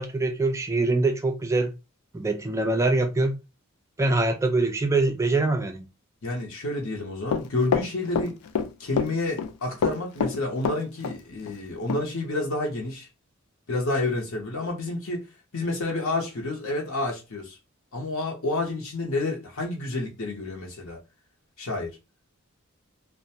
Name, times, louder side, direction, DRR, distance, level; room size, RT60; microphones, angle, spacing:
voice 1, 0.0-1.7 2.1-3.4 4.0-5.9, right 2 dB, 15° right, 0.3 m, -24 dB
voice 2, 6.2-8.3 8.8-13.1 13.7-15.2 15.5-17.6 17.9-21.0 21.6-22.0, left 2 dB, 65° left, 0.7 m, -29 dB
Run, 7.3-8.7 9.0-9.5 9.8-11.2 11.5-11.6 11.9-12.0, left 6 dB, 90° left, 0.4 m, -26 dB
2.4 x 2.1 x 2.7 m
head